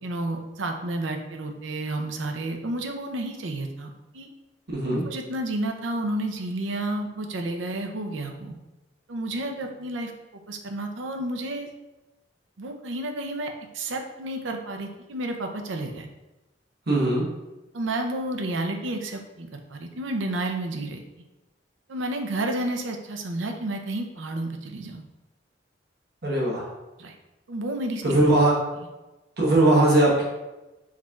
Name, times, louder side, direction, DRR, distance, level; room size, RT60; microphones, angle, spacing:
voice 1, 0.0-4.3 4.9-8.6 9.1-11.7 12.6-16.1 17.7-21.0 21.9-25.0 27.0-27.1 27.5-28.2, right 1 dB, 85° right, 4 dB, 0.6 m, -31 dB
voice 2, 4.7-5.0 16.9-17.3 26.2-26.7 28.0-28.5 29.4-30.2, right 2 dB, 60° right, -4 dB, 1.1 m, -20 dB
4.8 x 4.3 x 2.3 m, 1.1 s
head